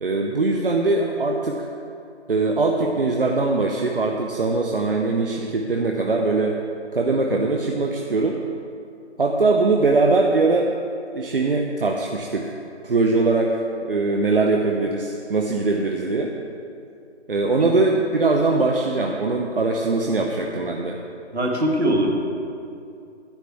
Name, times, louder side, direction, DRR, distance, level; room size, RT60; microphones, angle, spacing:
voice 1, 0.0-1.7 2.3-6.6 6.9-8.4 9.2-10.7 11.1-12.5 12.8-13.6 13.8-16.3 17.3-21.0, right 3 dB, 50° right, 1 dB, 0.8 m, -21 dB
voice 2, 21.3-22.1, right 1 dB, 70° right, 1 dB, 2.1 m, -21 dB
10.0 x 6.4 x 7.9 m, 2.5 s
figure-of-eight pair, 150°, 34 cm